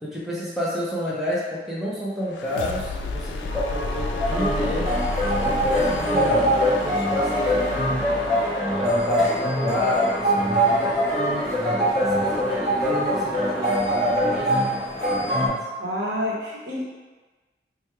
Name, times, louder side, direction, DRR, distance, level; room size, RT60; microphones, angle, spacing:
voice 1, 0.0-5.0 5.4-8.0 8.8-11.1 11.5-14.6 15.2-15.6, left 1 dB, ahead, -8 dB, 0.5 m, -28 dB
sound 1, 2.3-12.0, left 3 dB, 90° left, 0.3 m, -33 dB
sound 2, 3.5-13.9, equal, 50° left, 0.9 m, -36 dB
sound 3, 4.2-15.5, equal, 20° right, 0.9 m, -23 dB
voice 2, 15.8-16.9, left 1 dB, 70° right, -5 dB, 0.9 m, -28 dB
3.2 x 2.3 x 4.3 m, 1.3 s
head